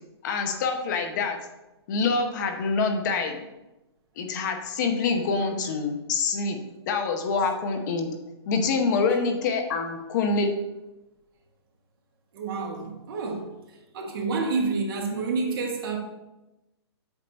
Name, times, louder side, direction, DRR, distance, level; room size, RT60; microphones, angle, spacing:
voice 1, 0.2-1.4 1.9-3.4 4.2-6.6 6.9-8.1 8.5-10.5, left 4 dB, 40° left, 0.8 m, -26 dB
voice 2, 12.3-13.5 13.9-16.0, right 4 dB, 55° right, 1.5 m, -28 dB
8.0 x 2.8 x 5.2 m
hypercardioid pair, 150°, 14 cm